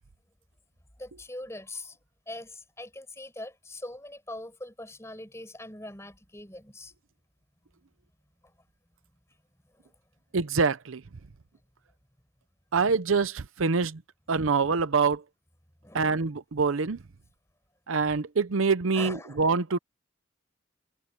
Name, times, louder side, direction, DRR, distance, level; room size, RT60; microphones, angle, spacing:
voice 1, 1.0-2.0 2.3-6.9 8.4-8.5 15.8-16.3 18.9-19.5, left 1 dB, 15° left, 6.5 m, -42 dB
voice 2, 10.3-11.0 12.7-14.0 14.3-15.2 15.9-17.0 17.9-19.8, right 4 dB, 80° right, 0.7 m, -25 dB
head